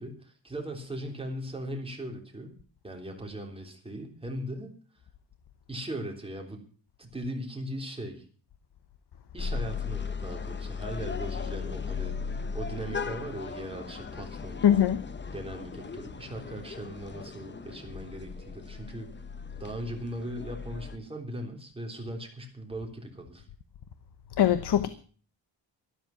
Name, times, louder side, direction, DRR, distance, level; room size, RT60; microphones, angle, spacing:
voice 1, 0.0-2.5 2.8-4.7 5.7-6.6 7.0-8.2 9.3-14.8 15.3-19.1 19.6-23.5, right 1 dB, 10° right, 3.4 m, -39 dB
sound 1, 9.4-21.0, left 5 dB, 25° left, 0.8 m, -37 dB
voice 2, 14.6-15.0 24.4-24.9, left 10 dB, 60° left, 1.0 m, -21 dB
13.5 x 12.5 x 5.8 m
wide cardioid pair, 160°, 45 cm